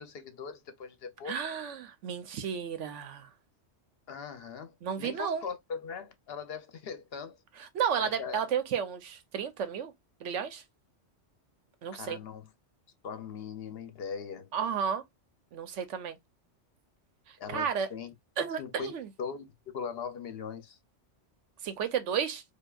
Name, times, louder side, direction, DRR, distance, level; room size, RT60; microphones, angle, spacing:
voice 1, 0.0-1.4 4.1-7.4 8.0-8.4 12.0-12.5 13.0-14.5 17.4-18.1 18.6-19.5 19.7-20.8, left 6 dB, 60° left, 0.8 m, -40 dB
voice 2, 1.3-3.3 4.8-5.4 7.6-9.9 10.2-10.6 11.8-12.2 14.5-15.0 15.5-16.2 17.3-17.9 18.4-19.1 21.6-22.4, right 7 dB, 85° right, 1.0 m, -32 dB
4.6 x 2.4 x 2.3 m
omnidirectional pair, 1.2 m